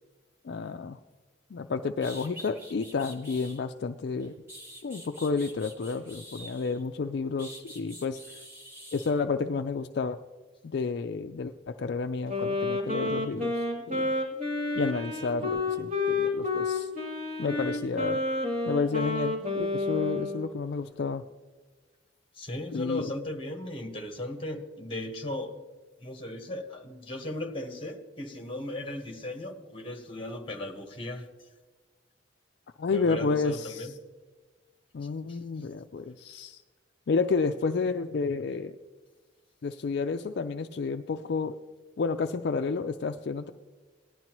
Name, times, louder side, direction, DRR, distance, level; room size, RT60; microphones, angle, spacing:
voice 1, 0.4-1.0 1.5-4.3 4.8-8.2 8.9-10.2 10.6-14.1 14.8-16.9 17.4-18.2 18.6-21.2 22.7-23.1 32.8-33.9 34.9-36.6 37.1-38.8 39.6-41.6 42.0-43.5, left 4 dB, 55° left, 7 dB, 0.4 m, -31 dB
sound 1, 1.6-1.7 2.0-3.6 4.2-6.8 7.4-9.1, equal, 10° right, 1.9 m, -47 dB
Wind instrument woodwind instrument, 12.3-20.5, left 2 dB, 40° right, 2.8 m, -30 dB
voice 2, 22.3-25.5 26.0-31.2 32.9-33.9 35.3-35.4, left 1 dB, 25° left, 4 dB, 1.2 m, -37 dB
18.0 x 11.0 x 3.0 m, 1.3 s
head